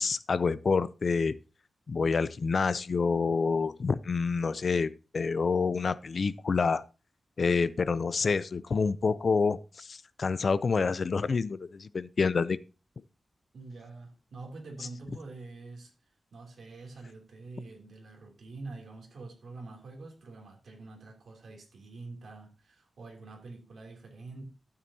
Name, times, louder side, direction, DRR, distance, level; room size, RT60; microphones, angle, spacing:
voice 1, 0.0-1.4 1.9-6.8 7.4-12.6, left 4 dB, 50° left, 0.5 m, -28 dB
voice 2, 13.5-15.9 16.3-24.4, right 3 dB, 75° right, 2.9 m, -46 dB
12.5 x 8.8 x 2.8 m
wide cardioid pair, 140°, 0 cm